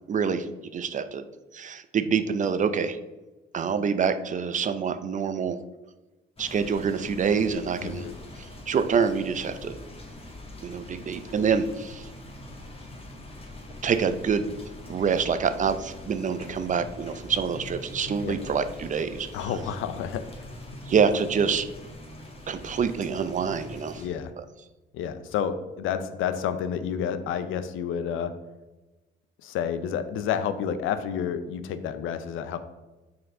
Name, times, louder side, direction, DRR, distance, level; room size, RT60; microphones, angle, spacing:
voice 1, 0.1-0.5 0.7-1.2 1.5-3.0 3.5-5.6 6.4-8.0 8.7-9.8 10.6-12.1 13.8-14.6 14.9-19.5 20.9-21.7 22.5-24.0, right 6 dB, 40° right, 11 dB, 0.5 m, -26 dB
sound 1, 6.4-24.1, left 1 dB, 30° left, 1.3 m, -43 dB
voice 2, 7.8-8.1 18.2-18.4 19.3-20.2 24.0-24.3 24.9-28.3 29.4-32.6, left 8 dB, 85° left, 11 dB, 0.6 m, -30 dB
6.7 x 4.3 x 3.8 m, 1.1 s
cardioid pair, 90°, 20 cm